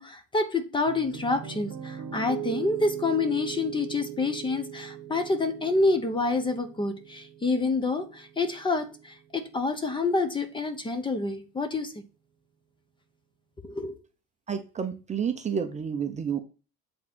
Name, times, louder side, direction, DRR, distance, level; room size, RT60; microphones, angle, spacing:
voice 1, 0.0-11.9 13.6-14.0, left 3 dB, 15° left, 0.9 m, -28 dB
Piano, 0.9-9.0, right 10 dB, 60° right, 1.1 m, -40 dB
voice 2, 14.5-16.4, right 7 dB, 25° right, 0.7 m, -30 dB
8.3 x 3.8 x 6.1 m
cardioid pair, 145°, 31 cm